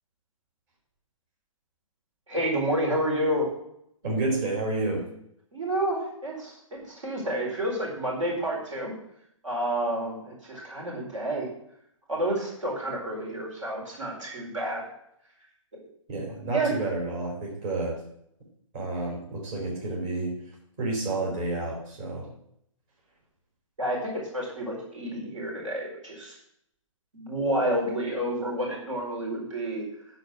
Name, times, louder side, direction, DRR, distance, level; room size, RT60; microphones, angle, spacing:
voice 1, 2.3-3.5 5.5-8.9 9.4-11.5 12.1-14.8 15.7-15.8 16.5-16.7 23.8-26.4 27.1-29.8, right 1 dB, 70° right, -2 dB, 4.4 m, -29 dB
voice 2, 4.0-5.0 16.1-18.0 18.7-20.4 20.8-22.3, right 2 dB, 40° right, -3 dB, 4.4 m, -30 dB
11.5 x 4.7 x 6.5 m, 0.74 s
figure-of-eight pair, 130°, 17 cm